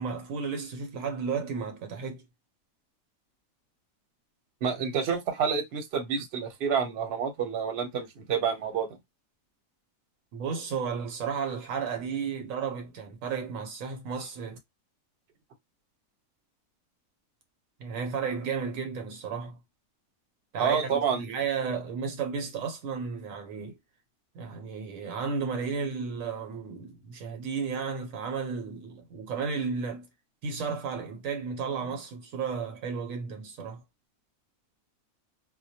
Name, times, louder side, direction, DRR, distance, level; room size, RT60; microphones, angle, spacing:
voice 1, 0.0-2.2 10.3-14.6 17.8-19.6 20.5-20.9 21.2-23.8 24.3-30.1 30.4-33.8, right 5 dB, 75° right, 1.0 m, -33 dB
voice 2, 4.6-9.0 20.6-21.4, right 6 dB, 55° right, 0.8 m, -28 dB
2.2 x 2.1 x 2.7 m
omnidirectional pair, 1.4 m